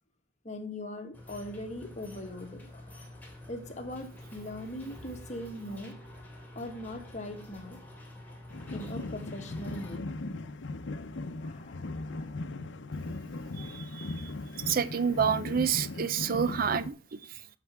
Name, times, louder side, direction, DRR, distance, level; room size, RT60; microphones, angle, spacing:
voice 1, 0.4-6.0 6.5-7.8 8.7-10.1 11.0-11.1 11.4-12.4 13.4-13.8, left 1 dB, 40° left, 1.6 m, -41 dB
sound 1, 1.1-10.0, left 1 dB, 10° left, 2.7 m, -48 dB
sound 2, 8.5-16.9, left 2 dB, 90° left, 0.7 m, -38 dB
voice 2, 13.6-17.4, right 7 dB, 50° right, 0.5 m, -29 dB
9.9 x 7.0 x 3.5 m
head